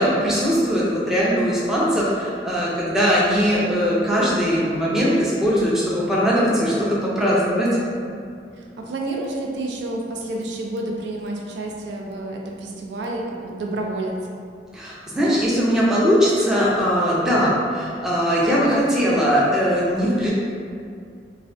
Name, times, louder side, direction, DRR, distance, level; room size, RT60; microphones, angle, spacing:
voice 1, 0.0-7.8 14.7-20.3, equal, 5° right, -7 dB, 0.4 m, -20 dB
voice 2, 8.6-14.2, right 2 dB, 80° right, -1 dB, 0.4 m, -29 dB
3.2 x 2.1 x 2.5 m, 2.3 s
head